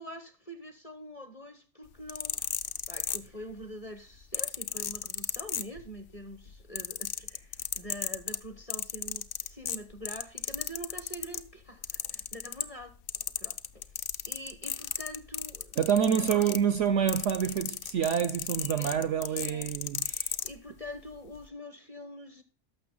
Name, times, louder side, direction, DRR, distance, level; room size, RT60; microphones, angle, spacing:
voice 1, 0.0-2.4 2.9-13.0 13.4-13.9 14.3-16.5 18.6-19.0 19.3-19.7 20.4-22.4, equal, 30° left, 0.9 m, -45 dB
sound 1, 1.9-3.6 4.3-6.1 6.4-11.5 11.8-12.8 13.1-20.5 21.3-21.4, left 9 dB, 70° left, 0.5 m, -34 dB
voice 2, 15.8-20.4, right 8 dB, 65° right, 0.8 m, -27 dB
12.0 x 6.8 x 3.7 m
omnidirectional pair, 1.6 m